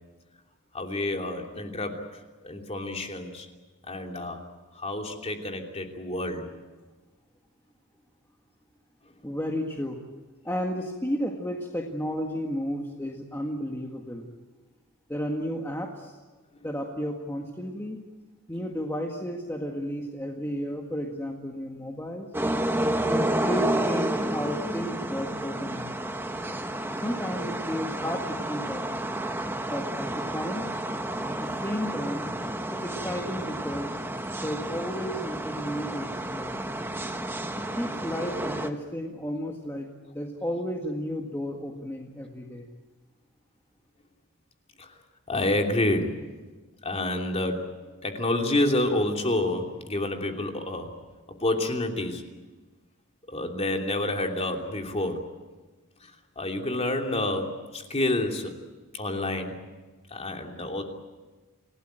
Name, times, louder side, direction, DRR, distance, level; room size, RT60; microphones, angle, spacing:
voice 1, 0.7-3.5 3.9-4.4 4.7-6.5 44.8-45.0 45.3-46.2 46.8-47.8 48.0-50.9 51.4-52.2 53.3-55.2 56.0-58.5 58.9-59.6 60.1-60.8, left 1 dB, 30° left, 2 dB, 3.0 m, -29 dB
voice 2, 9.2-10.0 10.4-14.3 15.1-16.2 16.6-18.0 18.5-22.3 23.0-25.9 26.9-28.9 29.7-30.7 31.3-32.3 32.7-34.0 34.3-36.5 37.5-39.9 40.1-42.7, equal, 10° left, 0 dB, 1.8 m, -33 dB
sound 1, 22.3-38.7, right 1 dB, 10° right, 1.2 m, -30 dB
28.5 x 17.5 x 9.0 m, 1.3 s
head